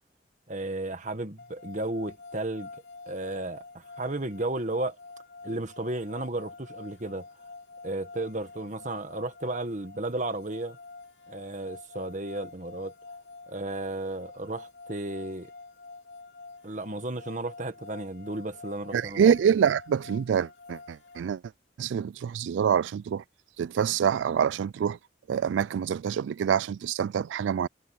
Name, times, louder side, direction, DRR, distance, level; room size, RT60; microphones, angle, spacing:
voice 1, 0.5-2.7 3.1-5.0 5.4-7.3 7.8-10.8 11.3-12.9 13.5-15.5 16.6-19.2, right 2 dB, 40° right, 1.6 m, -33 dB
sound 1, 1.4-21.2, left 3 dB, 70° left, 3.7 m, -47 dB
voice 2, 18.9-21.4 21.8-23.2 23.6-25.0 25.3-27.7, right 8 dB, 80° right, 0.3 m, -26 dB
head